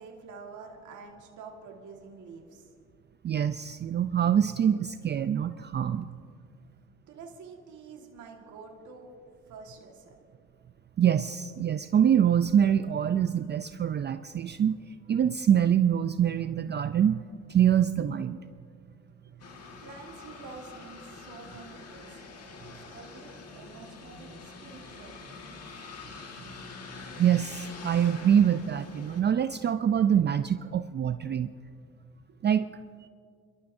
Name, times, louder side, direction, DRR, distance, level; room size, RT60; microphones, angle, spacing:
voice 1, 0.0-2.7 7.1-10.2 19.8-22.2 22.7-25.4 32.3-32.4, right 4 dB, 75° right, 0 dB, 1.7 m, -48 dB
voice 2, 3.2-6.1 11.0-18.4 27.2-31.5 32.4-32.7 33.0-33.1, right 9 dB, 35° right, 11 dB, 0.4 m, -25 dB
sound 1, 19.4-29.2, left 4 dB, 55° left, 1.7 m, -45 dB
27.5 x 13.0 x 2.6 m, 2.2 s
cardioid pair, 90°, 30 cm